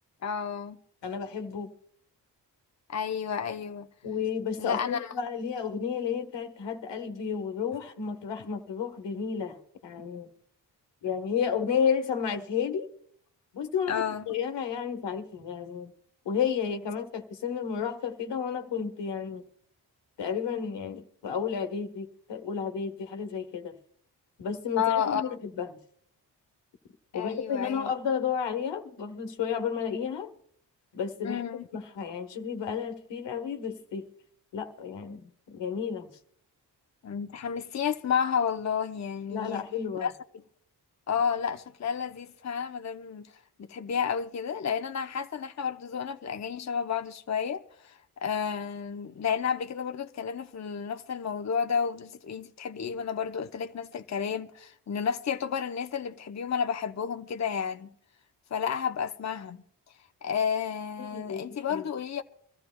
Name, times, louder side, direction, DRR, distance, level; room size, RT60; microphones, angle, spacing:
voice 1, 0.2-0.8 2.9-3.9 4.6-5.1 13.9-14.2 24.8-25.3 27.1-27.9 31.2-31.6 37.0-39.6 40.0-40.1 41.1-43.3 43.6-47.9 48.2-57.9 58.5-59.6 60.2-62.2, left 7 dB, 40° left, 0.8 m, -31 dB
voice 2, 1.0-1.7 4.0-10.3 11.0-12.9 13.5-15.9 16.2-19.4 20.2-23.8 24.4-25.8 27.1-30.3 30.9-31.4 31.7-34.1 34.5-36.1 39.3-40.1 61.1-61.8, left 7 dB, 80° left, 1.4 m, -32 dB
24.5 x 14.0 x 2.3 m
cardioid pair, 50°, 42 cm